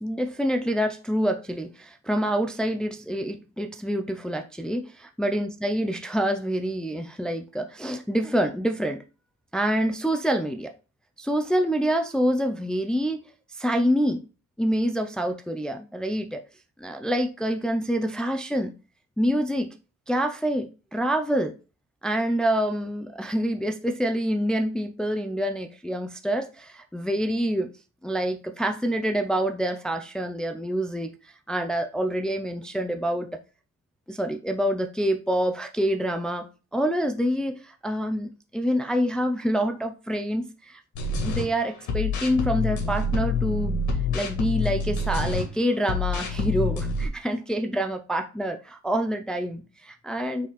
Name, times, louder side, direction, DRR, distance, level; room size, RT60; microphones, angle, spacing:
voice 1, 0.0-9.0 9.5-10.7 11.2-13.2 13.5-14.2 14.6-16.4 16.8-18.7 19.2-19.7 20.1-21.6 22.0-27.7 28.0-31.1 31.5-33.3 34.1-40.8 41.2-43.9 44.1-50.5, equal, 5° left, 0.4 m, -26 dB
sound 1, 40.9-41.4 41.9-45.4 45.8-47.1, left 3 dB, 80° left, 2.3 m, -27 dB
6.0 x 4.2 x 4.0 m
cardioid pair, 175°, 29 cm